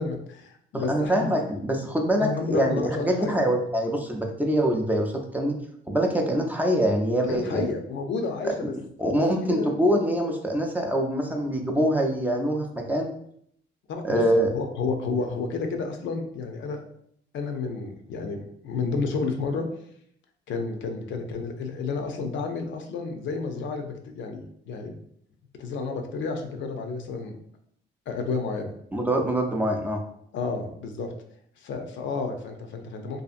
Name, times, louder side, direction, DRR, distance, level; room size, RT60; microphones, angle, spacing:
voice 1, 0.0-1.3 2.2-3.4 7.3-8.7 9.4-9.7 13.9-16.8 17.3-19.7 20.5-24.9 25.6-27.3 28.1-28.7 30.3-31.1 31.6-33.2, left 4 dB, 70° left, 4 dB, 0.5 m, -31 dB
voice 2, 0.7-5.5 5.9-7.6 9.0-13.1 14.0-14.5 28.9-30.0, equal, 10° right, 1 dB, 0.4 m, -24 dB
2.7 x 2.4 x 2.4 m, 0.68 s
cardioid pair, 90°, 20 cm